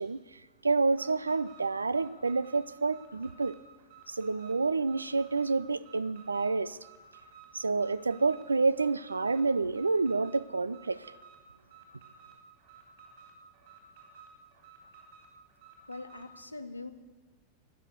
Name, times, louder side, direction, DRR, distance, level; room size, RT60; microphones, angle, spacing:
voice 1, 0.0-3.6 4.1-6.8 7.5-11.1, right 3 dB, 80° right, 0.4 m, -29 dB
Alarm, 0.9-16.3, right 5 dB, 55° right, 3.0 m, -55 dB
voice 2, 15.9-16.9, left 2 dB, 85° left, 0.8 m, -42 dB
19.5 x 6.5 x 8.1 m
figure-of-eight pair, 90°, 0 cm